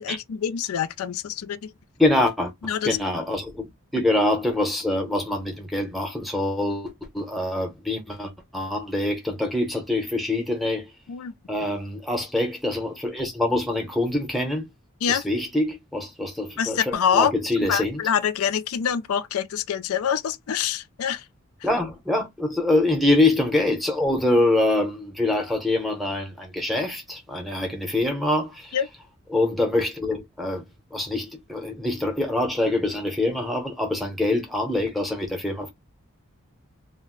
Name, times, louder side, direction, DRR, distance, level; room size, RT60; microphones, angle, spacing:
voice 1, 0.0-1.7 2.6-3.0 11.1-11.3 15.0-15.2 16.6-17.3 17.7-21.2 28.7-28.9, left 8 dB, 90° left, 0.4 m, -25 dB
voice 2, 2.0-2.5 2.8-3.6 3.9-10.9 11.5-14.7 15.1-18.0 21.6-28.8 29.3-30.6 30.9-35.7, left 2 dB, ahead, 0.7 m, -25 dB
2.5 x 2.0 x 3.7 m
head